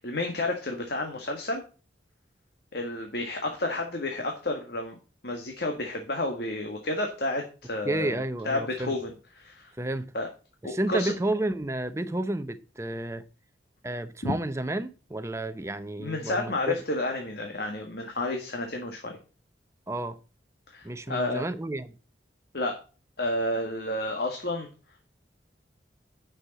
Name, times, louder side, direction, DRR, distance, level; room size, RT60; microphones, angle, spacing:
voice 1, 0.0-1.6 2.7-5.0 5.2-9.7 10.1-10.3 10.6-11.1 14.2-14.3 16.0-19.2 20.7-21.5 22.5-22.8 23.2-24.7, left 2 dB, 60° left, 1.6 m, -31 dB
voice 2, 7.9-8.9 9.8-10.1 10.6-13.2 13.8-16.7 19.9-20.2 20.8-21.9, right 1 dB, 15° right, 0.7 m, -31 dB
9.5 x 6.4 x 4.1 m
head